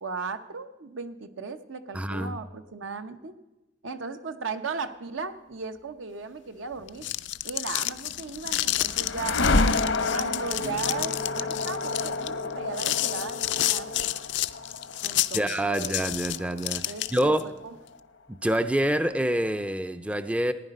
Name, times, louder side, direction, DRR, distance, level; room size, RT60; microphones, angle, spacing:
voice 1, 0.0-3.3 3.8-7.1 7.4-9.4 10.1-14.1 15.0-16.0 16.9-17.8, right 4 dB, 85° right, 0.8 m, -36 dB
voice 2, 1.9-2.3 15.3-17.5 18.3-20.5, right 1 dB, 5° right, 0.3 m, -27 dB
sound 1, 6.8-17.4, left 15 dB, 65° left, 0.4 m, -30 dB
sound 2, 8.0-18.0, left 3 dB, 80° left, 0.9 m, -30 dB
Acoustic guitar / Strum, 10.6-16.1, right 1 dB, 60° right, 1.0 m, -47 dB
15.5 x 9.9 x 5.3 m
head